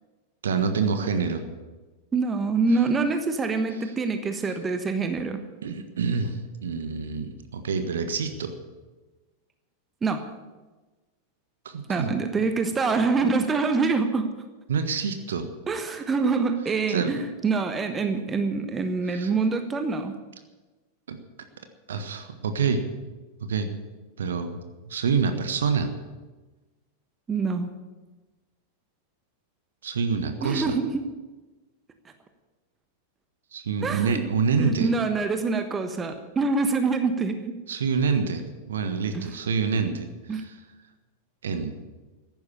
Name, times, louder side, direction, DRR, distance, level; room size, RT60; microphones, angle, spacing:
voice 1, 0.4-1.4 5.6-8.5 11.6-12.2 14.7-15.5 16.9-17.1 19.1-19.3 21.1-21.2 21.9-22.9 23.4-23.7 24.2-24.6 24.8-25.9 29.8-30.8 33.5-34.9 37.7-40.6 41.4-41.7, right 5 dB, 65° right, 8 dB, 1.4 m, -27 dB
voice 2, 2.1-5.4 10.0-10.3 11.9-14.3 15.7-20.1 27.3-27.7 30.4-31.1 33.8-34.3 34.6-37.5 39.1-39.3 40.3-40.4, right 4 dB, 20° right, 8 dB, 1.3 m, -25 dB
15.0 x 11.0 x 7.2 m, 1.2 s
figure-of-eight pair, 90°, 0 cm